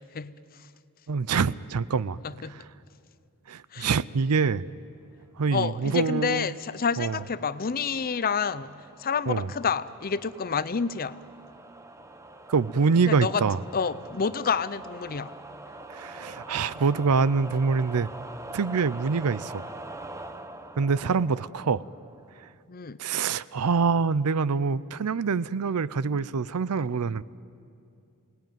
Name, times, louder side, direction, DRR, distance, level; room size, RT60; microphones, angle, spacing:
voice 1, 1.1-2.2 3.5-4.7 5.4-6.5 7.0-7.2 9.3-9.5 12.5-13.6 15.9-18.1 18.5-19.6 20.8-21.8 23.0-27.2, right 5 dB, 85° right, 18 dB, 0.6 m, -25 dB
voice 2, 2.2-2.6 3.7-3.9 5.5-11.2 13.0-13.4 13.7-15.3 22.7-23.0, left 5 dB, 40° left, 15 dB, 0.6 m, -29 dB
sound 1, 6.0-22.5, right 2 dB, 15° right, 0.9 m, -44 dB
28.5 x 19.5 x 9.3 m, 2.5 s
head